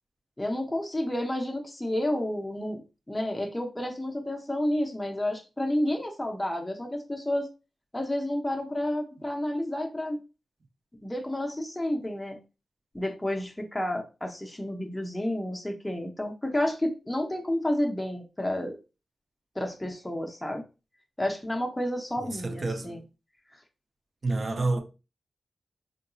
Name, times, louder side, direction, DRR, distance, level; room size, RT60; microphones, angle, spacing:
voice 1, 0.4-2.8 3.1-7.5 7.9-10.2 11.0-12.4 12.9-18.8 19.6-20.6 21.2-23.0, left 1 dB, 10° left, 0.6 m, -30 dB
voice 2, 22.2-23.0 24.2-24.8, right 2 dB, 50° right, 0.6 m, -29 dB
3.7 x 2.7 x 2.3 m
cardioid pair, 80°, 0 cm